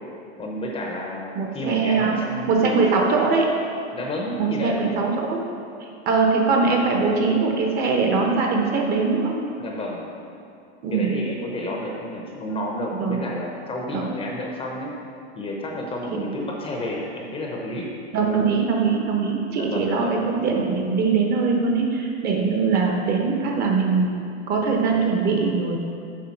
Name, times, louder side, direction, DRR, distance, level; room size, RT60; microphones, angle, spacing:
voice 1, 0.4-3.1 3.9-4.9 9.6-10.1 10.9-15.0 15.3-17.9 19.6-20.2, left 1 dB, 15° left, -1 dB, 0.8 m, -30 dB
voice 2, 1.3-2.1 2.5-3.5 4.3-5.4 5.8-9.4 10.8-11.1 12.9-13.2 13.9-14.1 16.1-16.3 18.1-24.1 24.5-25.8, right 4 dB, 30° right, 1 dB, 0.9 m, -22 dB
7.3 x 4.7 x 5.9 m, 2.7 s
supercardioid pair, 150°, 33 cm